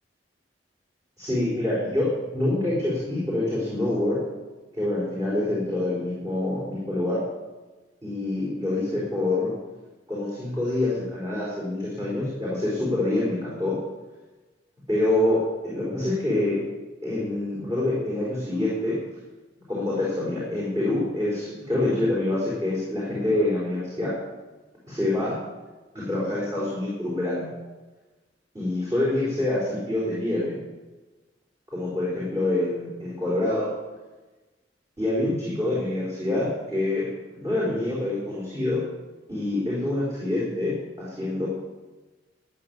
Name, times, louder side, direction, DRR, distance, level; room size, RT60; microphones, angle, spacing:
voice 1, 1.2-4.2 4.7-7.2 8.0-9.5 10.1-13.8 14.9-16.6 17.0-18.9 19.7-24.1 24.9-25.4 25.9-27.5 28.5-30.6 31.7-33.7 35.0-38.8 39.3-41.5, left 1 dB, 20° right, -7 dB, 4.0 m, -26 dB
13.0 x 9.4 x 7.4 m, 1.2 s
head